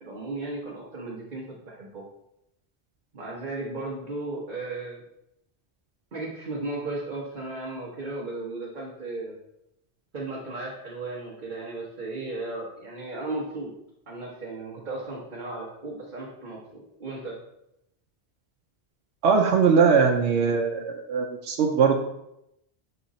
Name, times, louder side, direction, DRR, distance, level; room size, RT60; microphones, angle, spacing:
voice 1, 0.0-2.0 3.1-5.0 6.1-9.4 10.1-13.7 14.1-17.3, right 2 dB, 50° right, -4 dB, 1.2 m, -35 dB
voice 2, 19.2-22.0, right 5 dB, 80° right, 1 dB, 0.9 m, -21 dB
7.0 x 3.7 x 4.0 m, 0.82 s
omnidirectional pair, 1.1 m